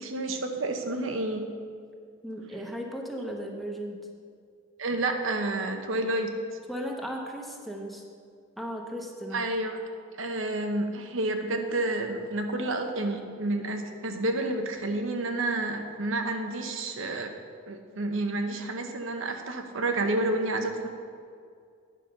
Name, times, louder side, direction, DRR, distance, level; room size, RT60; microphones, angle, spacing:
voice 1, 0.0-1.5 4.8-6.3 9.3-9.8 10.2-17.3 17.6-20.9, right 2 dB, 85° right, 5 dB, 0.9 m, -30 dB
voice 2, 2.2-4.1 6.7-8.0 8.6-9.5, equal, ahead, 1 dB, 0.8 m, -36 dB
9.7 x 5.3 x 6.6 m, 2.2 s
head